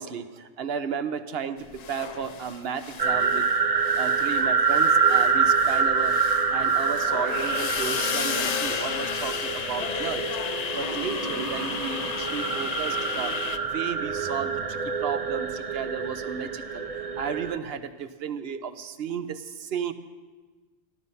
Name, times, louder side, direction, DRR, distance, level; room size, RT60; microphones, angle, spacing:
voice 1, 0.0-3.5 4.0-6.2 6.5-10.2 10.7-13.3 13.6-16.9 17.2-19.9, right 6 dB, 70° right, 11 dB, 1.0 m, -33 dB
sound 1, 1.7-3.6 3.8-13.6, left 7 dB, 50° left, 0.5 m, -33 dB
sound 2, 3.0-17.6, right 5 dB, 40° right, 0.7 m, -26 dB
13.5 x 12.5 x 5.4 m, 1.3 s
omnidirectional pair, 1.1 m